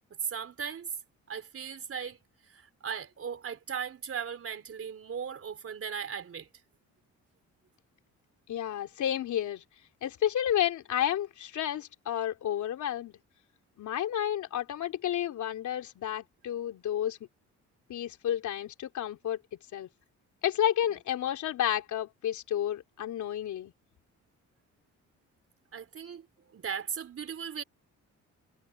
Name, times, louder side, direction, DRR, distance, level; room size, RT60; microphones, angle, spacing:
voice 1, 0.2-0.9 1.3-2.2 2.4-6.5 20.8-20.9 25.7-26.3 26.5-27.6, right 7 dB, 50° right, 3.8 m, -37 dB
voice 2, 8.5-9.6 10.0-13.2 13.8-17.2 17.9-19.4 19.7-19.9 20.4-23.7, left 11 dB, 75° left, 3.5 m, -31 dB
cardioid pair, 90°, 30 cm